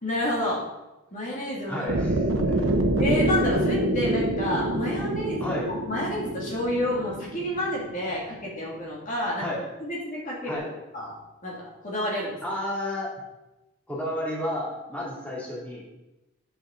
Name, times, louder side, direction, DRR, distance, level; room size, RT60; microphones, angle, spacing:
voice 1, 0.0-0.6 1.1-1.9 3.0-5.6 5.9-9.5 9.8-10.6 10.9-11.2 11.4-12.4, left 1 dB, 40° left, -4 dB, 2.0 m, -29 dB
voice 2, 1.7-2.2 2.5-2.8 5.4-5.7 9.4-9.6 10.5-10.7 12.4-13.1 13.9-15.8, left 1 dB, 5° left, -6 dB, 2.2 m, -31 dB
sound 1, 1.9-8.0, right 1 dB, 70° right, 0.9 m, -26 dB
8.3 x 7.1 x 3.7 m, 0.99 s
head